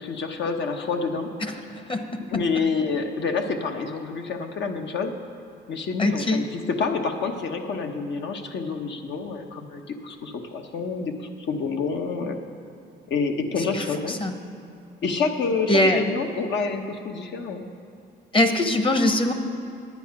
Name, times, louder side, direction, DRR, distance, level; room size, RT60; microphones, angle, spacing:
voice 1, 0.0-1.3 2.3-5.1 5.7-11.1 11.5-12.4 13.1-14.2 15.0-17.6, left 4 dB, 65° left, 4 dB, 1.0 m, -28 dB
voice 2, 6.0-6.4 14.2-14.3 15.7-16.0 18.3-19.3, left 1 dB, 25° left, 7 dB, 1.0 m, -21 dB
9.4 x 9.4 x 5.9 m, 2.6 s
cardioid pair, 90°, 20 cm